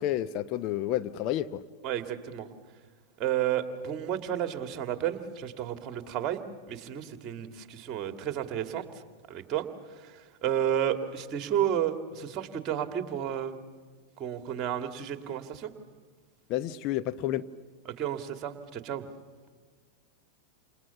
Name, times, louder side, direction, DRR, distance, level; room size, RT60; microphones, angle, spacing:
voice 1, 0.0-1.6 16.5-17.4, left 13 dB, 40° left, 0.8 m, -30 dB
voice 2, 1.8-2.5 3.2-6.4 6.7-8.8 9.3-9.7 9.9-13.5 14.2-15.7 17.9-19.0, right 10 dB, 35° right, 2.3 m, -32 dB
29.0 x 28.5 x 7.1 m
figure-of-eight pair, 90°, 0 cm